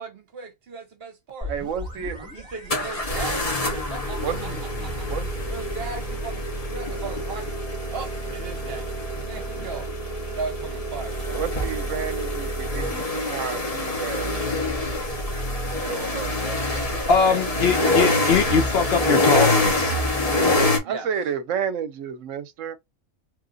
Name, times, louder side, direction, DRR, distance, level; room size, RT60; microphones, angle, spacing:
voice 1, 0.0-1.5 2.3-5.1 5.5-7.6 7.9-9.9 10.3-11.4 16.1-17.5 20.8-21.1, right 4 dB, 55° right, 0.9 m, -37 dB
sound 1, 1.4-11.0, left 2 dB, 5° right, 0.9 m, -42 dB
sound 2, 1.5-1.6 2.7-20.8, left 1 dB, 35° left, 0.8 m, -26 dB
voice 2, 1.5-2.3 4.2-4.6 5.1-5.3 11.4-14.4 15.8-17.2 20.8-22.8, right 7 dB, 75° right, 0.9 m, -31 dB
voice 3, 17.1-20.0, left 5 dB, 65° left, 0.7 m, -21 dB
3.0 x 2.5 x 2.3 m
omnidirectional pair, 1.4 m